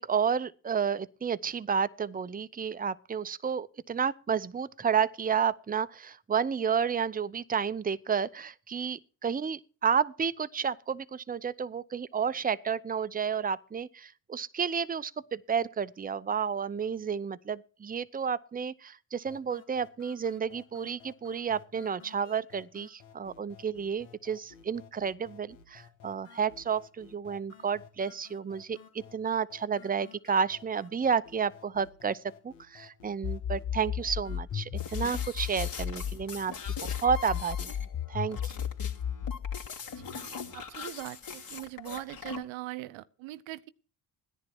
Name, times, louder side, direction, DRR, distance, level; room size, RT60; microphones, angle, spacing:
voice 1, 0.0-36.5 36.8-37.7 38.1-38.6, right 7 dB, 20° right, 0.7 m, -31 dB
sound 1, 19.3-35.3, left 7 dB, 85° left, 2.2 m, -55 dB
sound 2, 33.2-36.2 36.7-39.7, left 9 dB, 30° left, 0.9 m, -34 dB
sound 3, 34.8-42.4, left 6 dB, 45° left, 2.9 m, -42 dB
voice 2, 40.2-43.7, right 18 dB, 75° right, 0.8 m, -41 dB
16.0 x 10.5 x 4.5 m
supercardioid pair, 60°, 46 cm